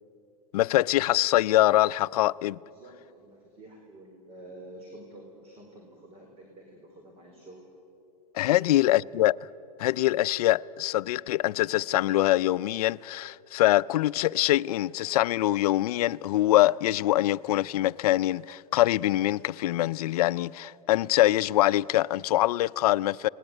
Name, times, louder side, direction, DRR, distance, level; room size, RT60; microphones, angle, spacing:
voice 1, 0.5-2.6 8.3-9.4 9.8-23.3, left 15 dB, 70° left, 0.5 m, -24 dB
voice 2, 2.7-7.7 8.5-9.1, right 1 dB, 30° right, 4.4 m, -48 dB
29.0 x 19.5 x 9.0 m
supercardioid pair, 135°, 20 cm